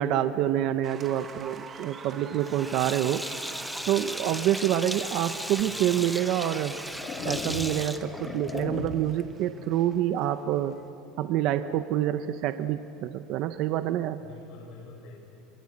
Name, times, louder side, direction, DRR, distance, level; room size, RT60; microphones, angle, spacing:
voice 1, 0.0-3.2 3.9-6.8 7.2-10.8 11.2-14.2, right 12 dB, 50° right, 10 dB, 0.7 m, -27 dB
Applause, 0.8-10.9, right 5 dB, 25° right, 1.2 m, -47 dB
voice 2, 2.1-2.4 3.6-3.9 14.2-15.2, left 4 dB, 55° left, -3 dB, 5.2 m, -48 dB
Sink (filling or washing), 2.4-8.8, equal, ahead, 0.8 m, -37 dB
sound 1, 5.6-5.7 6.5-9.2, left 5 dB, 30° left, 1.6 m, -37 dB
25.5 x 22.5 x 8.6 m, 2.8 s
cardioid pair, 165°, 0 cm